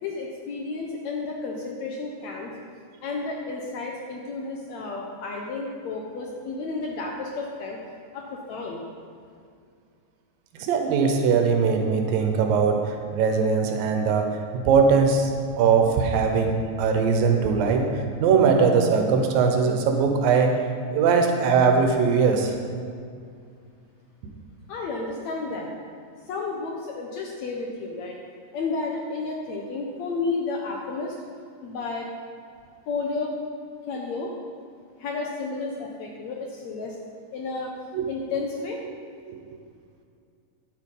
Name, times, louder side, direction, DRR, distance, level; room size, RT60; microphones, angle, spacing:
voice 1, 0.0-2.5 3.0-7.8 8.1-8.8 24.7-25.7 26.3-28.2 28.5-31.2 31.6-32.1 32.9-33.3 33.9-34.3 35.0-37.0 37.3-37.7 38.1-38.8, left 3 dB, 70° left, 0 dB, 1.8 m, -32 dB
voice 2, 10.6-15.3 15.6-20.5 20.9-22.6 37.9-38.1 39.3-39.4, right 5 dB, 80° right, 4 dB, 2.7 m, -21 dB
9.9 x 8.0 x 5.4 m, 2.3 s
omnidirectional pair, 4.0 m